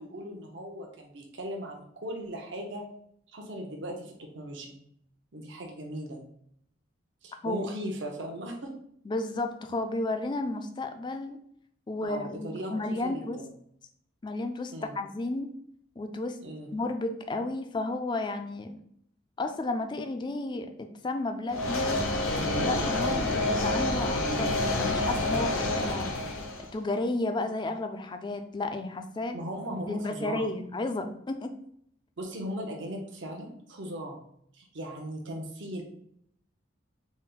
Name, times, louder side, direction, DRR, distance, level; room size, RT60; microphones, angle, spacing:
voice 1, 0.0-2.8 3.3-4.8 5.3-6.2 7.2-8.7 12.1-12.7 13.0-13.4 14.7-15.0 16.4-16.7 23.0-23.2 29.3-30.5 32.2-34.2 34.5-35.8, equal, 65° right, 1 dB, 0.7 m, -38 dB
voice 2, 7.4-7.9 9.1-11.4 11.9-13.4 14.2-15.5 16.0-16.4 16.7-18.8 19.4-22.0 22.6-26.1 26.7-29.4 29.9-31.5, left 2 dB, 25° left, 6 dB, 0.3 m, -32 dB
sound 1, 21.5-26.7, left 2 dB, 85° left, 0.8 m, -28 dB
4.1 x 2.1 x 3.8 m, 0.69 s
head